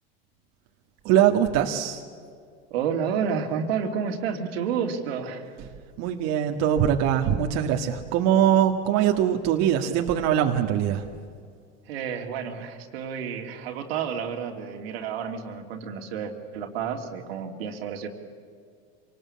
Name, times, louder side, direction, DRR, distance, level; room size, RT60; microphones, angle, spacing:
voice 1, 1.0-2.0 6.0-11.1, right 10 dB, 60° right, 3 dB, 1.8 m, -22 dB
voice 2, 2.7-5.4 11.9-18.1, right 7 dB, 90° right, 4 dB, 2.8 m, -30 dB
26.5 x 19.5 x 8.6 m, 2.2 s
supercardioid pair, 120°, 30 cm